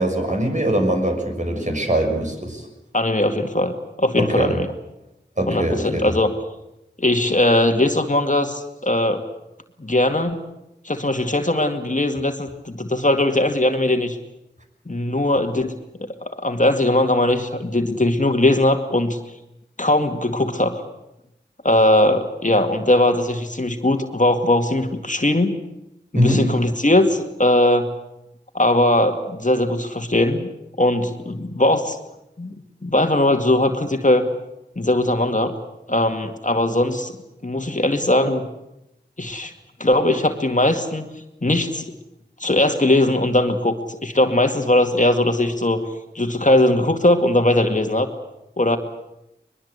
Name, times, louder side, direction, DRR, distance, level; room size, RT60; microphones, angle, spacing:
voice 1, 0.0-2.7 4.2-4.5 5.4-6.1 26.1-26.4, right 1 dB, 40° right, 2 dB, 6.4 m, -21 dB
voice 2, 2.9-4.7 5.5-6.3 7.0-9.2 9.8-10.4 10.8-14.2 14.9-15.7 16.0-19.2 19.8-20.8 21.6-25.5 26.1-27.9 28.5-30.5 30.8-32.0 32.4-32.5 32.8-34.3 34.8-35.5 35.9-37.2 37.4-38.5 39.2-39.5 39.8-41.0 41.4-41.8 42.4-43.7 44.0-45.8 46.1-48.1 48.6-48.8, left 1 dB, 45° left, 5 dB, 2.2 m, -19 dB
22.5 x 22.0 x 8.3 m, 0.88 s
wide cardioid pair, 45°, 19 cm